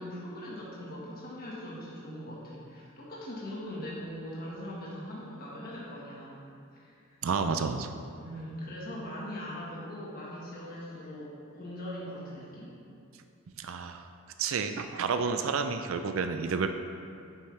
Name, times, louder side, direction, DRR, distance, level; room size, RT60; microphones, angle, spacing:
voice 1, 0.0-6.4 6.7-7.2 8.2-12.7 14.7-14.8, equal, 45° left, -6 dB, 1.5 m, -41 dB
voice 2, 7.2-7.9 13.6-14.1 14.4-16.7, right 5 dB, 70° right, 7 dB, 0.4 m, -30 dB
9.2 x 7.4 x 3.3 m, 2.5 s
head